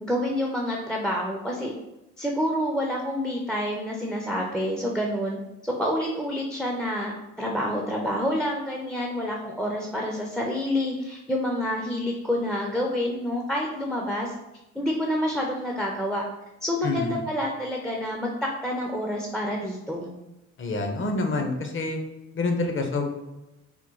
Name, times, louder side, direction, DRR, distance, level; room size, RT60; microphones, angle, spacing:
voice 1, 0.0-1.7 2.2-5.4 5.6-7.1 7.4-14.3 14.7-16.2 16.6-20.1, equal, ahead, -1 dB, 0.4 m, -28 dB
voice 2, 16.8-17.2 20.6-22.0 22.3-23.1, left 3 dB, 40° left, 4 dB, 0.6 m, -27 dB
3.6 x 2.1 x 2.9 m, 0.97 s
cardioid pair, 90°, 30 cm